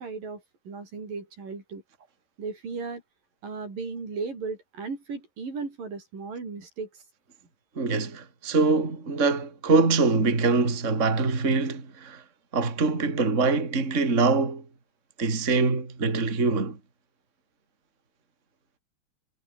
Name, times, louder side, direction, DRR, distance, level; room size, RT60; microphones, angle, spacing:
voice 1, 0.0-1.8 2.4-3.0 3.4-6.9, right 4 dB, 90° right, 8.2 m, -36 dB
voice 2, 7.8-12.2 12.5-14.6 15.2-16.8, right 3 dB, 20° right, 3.4 m, -24 dB
omnidirectional pair, 3.8 m